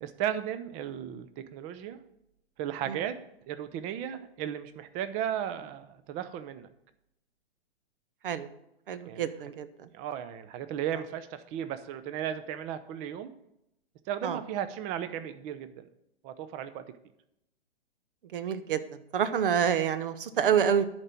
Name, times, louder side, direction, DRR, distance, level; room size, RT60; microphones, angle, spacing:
voice 1, 0.0-2.0 2.6-3.2 3.5-6.7 9.1-9.2 9.9-13.3 14.1-15.9 16.2-16.8, right 10 dB, 20° right, 12 dB, 0.6 m, -35 dB
voice 2, 8.9-9.7 14.2-14.4 18.3-18.8 19.1-20.9, right 8 dB, 55° right, 13 dB, 0.9 m, -27 dB
10.5 x 4.5 x 7.7 m, 0.82 s
hypercardioid pair, 130°, 31 cm